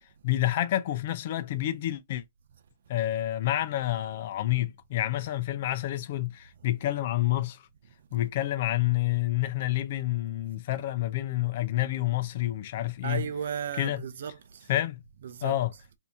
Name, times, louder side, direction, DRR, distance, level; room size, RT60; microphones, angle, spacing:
voice 1, 0.2-2.2 2.9-7.6 8.1-13.3 13.8-14.0 14.7-15.0 15.4-15.7, left 14 dB, 45° left, 0.6 m, -28 dB
voice 2, 13.0-14.7 15.2-15.6, right 7 dB, 65° right, 0.5 m, -35 dB
2.8 x 2.7 x 3.5 m
hypercardioid pair, 150°, 0 cm